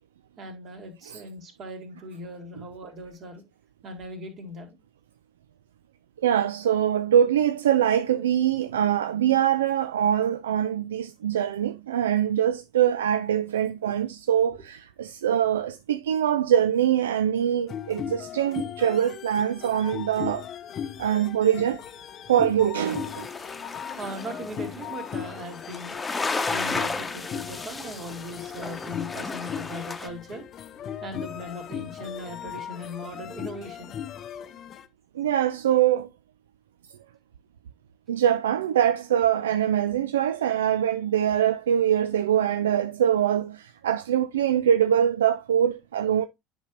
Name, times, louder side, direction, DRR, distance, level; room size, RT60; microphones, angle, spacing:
voice 1, 0.4-3.4 3.8-4.8 24.0-26.0 26.5-30.4 31.0-34.0, equal, 50° right, 2.6 m, -39 dB
voice 2, 6.2-20.5 21.0-21.8 22.3-23.3 35.2-36.1 38.1-46.3, right 10 dB, 80° right, 0.3 m, -23 dB
sound 1, 17.7-34.9, left 9 dB, 45° left, 0.6 m, -38 dB
sound 2, 22.8-30.1, left 3 dB, 20° left, 1.0 m, -34 dB
9.8 x 5.3 x 2.5 m
hypercardioid pair, 70°, 0 cm